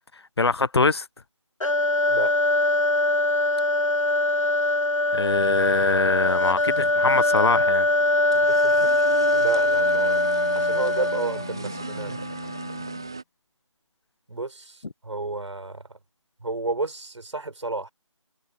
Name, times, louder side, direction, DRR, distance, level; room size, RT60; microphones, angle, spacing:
voice 1, 0.4-1.0 5.1-7.9, left 4 dB, 55° left, 0.8 m, -23 dB
sound 1, 1.6-11.5, left 1 dB, 80° left, 2.0 m, -22 dB
sound 2, 6.2-13.2, right 4 dB, 10° right, 0.4 m, -38 dB
voice 2, 8.5-8.9 9.3-10.2 10.5-12.2 14.3-14.8 15.0-15.8 16.4-17.9, right 2 dB, 65° right, 4.9 m, -31 dB
Wind instrument woodwind instrument, 9.8-13.2, left 6 dB, 35° left, 6.2 m, -41 dB
figure-of-eight pair, 160°, 16 cm